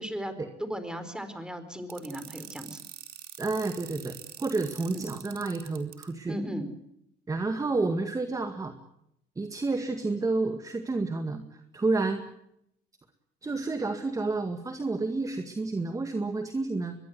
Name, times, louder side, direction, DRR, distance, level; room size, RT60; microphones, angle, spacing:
voice 1, 0.0-0.3 0.6-2.8 4.9-5.1 6.3-6.7, equal, 5° right, 10 dB, 4.4 m, -36 dB
sound 1, 1.9-6.0, right 11 dB, 70° right, 4.2 m, -44 dB
voice 2, 3.4-6.3 7.3-8.7 9.4-12.2 13.4-17.0, right 3 dB, 20° right, 7 dB, 2.0 m, -30 dB
23.5 x 22.0 x 7.9 m, 0.77 s
cardioid pair, 110°, 17 cm